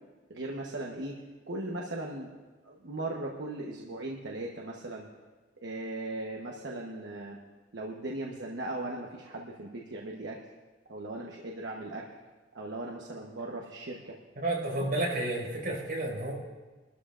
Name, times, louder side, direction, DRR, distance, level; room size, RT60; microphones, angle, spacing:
voice 1, 0.3-1.1 1.5-2.3 2.6-5.1 5.6-7.4 7.7-10.4 10.9-12.0 12.5-14.1 14.8-14.9, right 2 dB, 70° right, -1 dB, 1.1 m, -38 dB
voice 2, 14.3-16.3, right 2 dB, 50° right, -3 dB, 5.1 m, -31 dB
22.0 x 12.5 x 2.5 m, 1.3 s
head